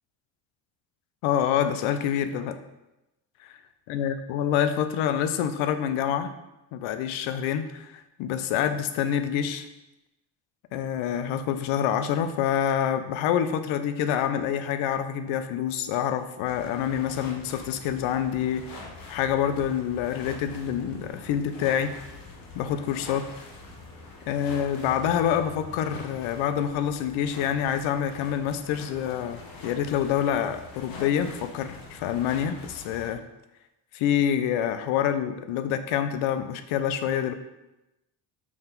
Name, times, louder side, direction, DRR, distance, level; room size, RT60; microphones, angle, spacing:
voice 1, 1.2-2.6 3.4-3.5 3.9-6.3 6.7-9.7 10.7-21.9 22.5-23.3 24.3-33.2 33.9-37.3, left 9 dB, 85° left, 10 dB, 0.7 m, -27 dB
sound 1, 16.4-33.1, left 3 dB, 45° left, 1.4 m, -44 dB
6.0 x 4.4 x 4.0 m, 0.94 s
cardioid pair, 130°, 47 cm